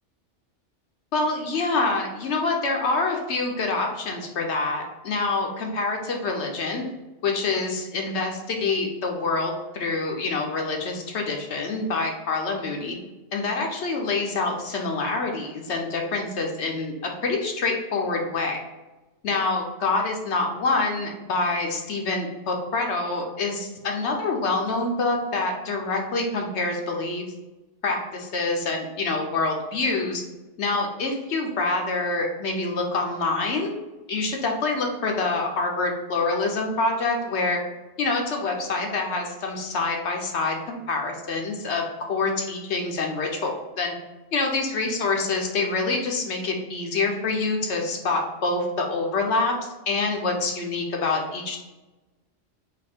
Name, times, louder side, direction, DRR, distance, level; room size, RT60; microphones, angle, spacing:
voice 1, 1.1-6.8 7.2-13.0 13.3-16.9 17.2-18.6 19.2-27.2 27.8-30.2 30.6-33.7 34.1-37.6 38.0-43.9 44.3-49.5 49.9-51.6, left 3 dB, 65° left, 1 dB, 0.9 m, -26 dB
4.2 x 2.6 x 4.2 m, 1.1 s
omnidirectional pair, 1.3 m